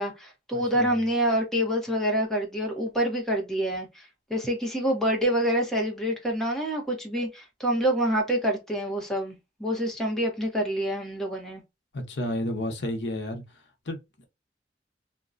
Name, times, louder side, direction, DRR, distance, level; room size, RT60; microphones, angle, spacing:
voice 1, 0.0-11.6, equal, 5° left, 0.9 m, -27 dB
voice 2, 0.5-1.0 11.9-13.4 13.9-14.3, left 1 dB, 80° left, 0.8 m, -32 dB
2.7 x 2.2 x 2.4 m
head